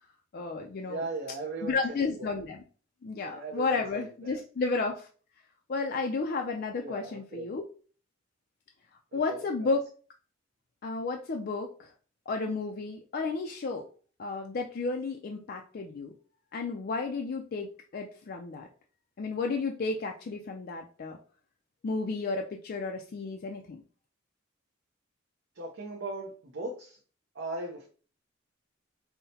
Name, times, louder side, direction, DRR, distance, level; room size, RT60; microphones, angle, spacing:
voice 1, 0.3-1.0 1.6-2.6 3.0-5.1 5.7-7.6 9.1-9.8 10.8-11.9 12.3-13.8 14.2-16.1 16.5-18.7 19.2-21.2 21.8-23.8, left 3 dB, 50° left, 2 dB, 0.4 m, -32 dB
voice 2, 0.9-2.3 3.3-4.4 6.8-7.5 9.1-9.8 25.5-27.0 27.3-27.9, right 2 dB, 65° right, -1 dB, 0.7 m, -38 dB
5.5 x 2.1 x 2.8 m, 0.39 s
head